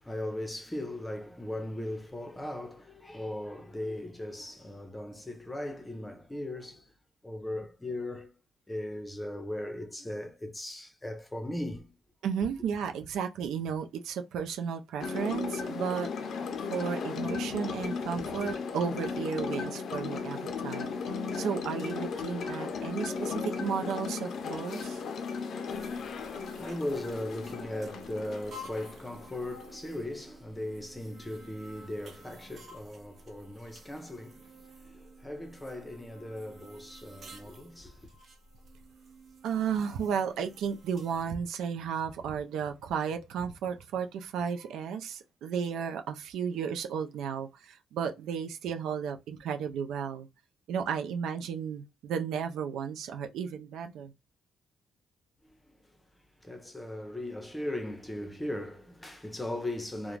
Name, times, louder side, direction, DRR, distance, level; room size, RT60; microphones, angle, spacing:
voice 1, 0.0-6.9 7.2-8.3 8.7-11.9 25.8-38.1 55.4-55.8 56.4-60.2, left 1 dB, 10° left, 0.7 m, -38 dB
voice 2, 12.2-16.3 16.7-25.0 39.4-50.3 50.7-54.1, right 7 dB, 80° right, 0.4 m, -34 dB
sound 1, 15.0-29.7, left 5 dB, 65° left, 0.5 m, -36 dB
sound 2, 25.7-41.2, equal, 50° right, 0.8 m, -52 dB
2.4 x 2.1 x 3.1 m
cardioid pair, 90°, 0 cm